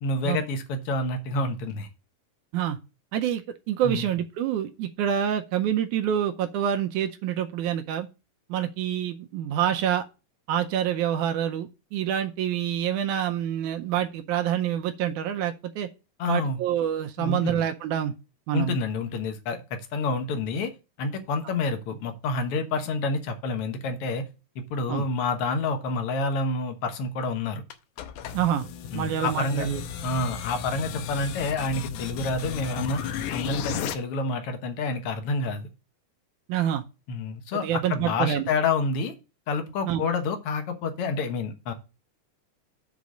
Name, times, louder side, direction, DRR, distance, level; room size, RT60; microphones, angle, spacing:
voice 1, 0.0-1.9 3.8-4.1 16.2-16.6 17.2-17.6 18.5-20.7 21.0-24.2 24.6-27.6 28.9-29.7 30.0-33.0 33.3-35.7 37.1-39.1 39.5-41.7, left 3 dB, 60° left, 1.6 m, -28 dB
voice 2, 3.1-8.1 8.5-10.0 10.5-15.9 16.3-18.1 18.5-18.8 24.9-25.0 28.3-28.7 28.9-29.8 36.5-36.8 37.6-38.5 39.9-40.0, right 10 dB, 75° right, 2.0 m, -27 dB
sound 1, 27.7-33.9, left 9 dB, 75° left, 2.1 m, -35 dB
8.3 x 4.0 x 6.2 m
omnidirectional pair, 3.8 m